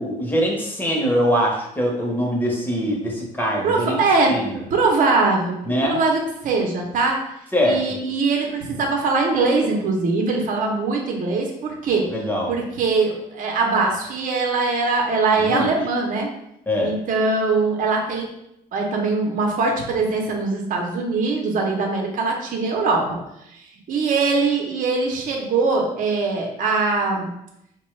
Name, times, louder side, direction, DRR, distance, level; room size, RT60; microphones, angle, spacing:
voice 1, 0.0-4.0 4.3-4.6 5.7-6.0 7.5-7.8 12.1-12.5 15.4-15.7 16.7-17.0, equal, 10° left, -1 dB, 0.9 m, -22 dB
voice 2, 3.6-4.3 4.7-5.6 5.8-7.2 7.6-12.1 12.5-16.3 16.8-18.3 18.7-23.2 23.9-27.3, right 3 dB, 50° right, 1 dB, 0.8 m, -22 dB
4.3 x 2.2 x 3.2 m, 0.81 s
cardioid pair, 110°, 17 cm